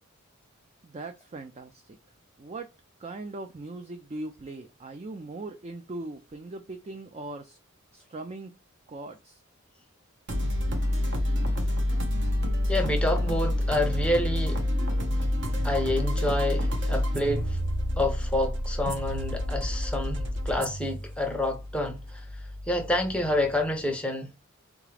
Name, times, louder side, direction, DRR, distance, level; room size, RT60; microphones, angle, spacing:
voice 1, 0.8-2.0 2.4-2.7 3.0-7.6 7.9-8.5 8.9-9.4, right 2 dB, 30° right, 0.4 m, -40 dB
sound 1, 10.3-23.7, left 1 dB, 55° right, 1.0 m, -28 dB
voice 2, 12.7-14.6 15.6-17.6 18.0-22.3 22.7-24.3, left 1 dB, 5° left, 0.7 m, -28 dB
4.0 x 3.6 x 3.3 m
head